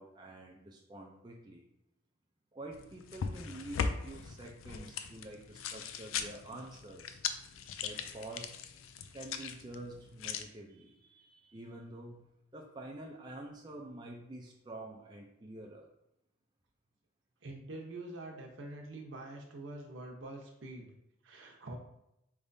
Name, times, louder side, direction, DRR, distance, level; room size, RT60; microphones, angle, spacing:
voice 1, 0.0-1.6 2.5-7.2 7.8-8.6 9.1-15.9, right 1 dB, 20° right, 0 dB, 0.4 m, -48 dB
sound 1, 2.7-10.4, left 6 dB, 90° left, 0.4 m, -40 dB
voice 2, 17.4-20.9 21.2-21.8, right 2 dB, 70° right, 1 dB, 0.8 m, -45 dB
4.8 x 3.4 x 2.6 m, 0.85 s
head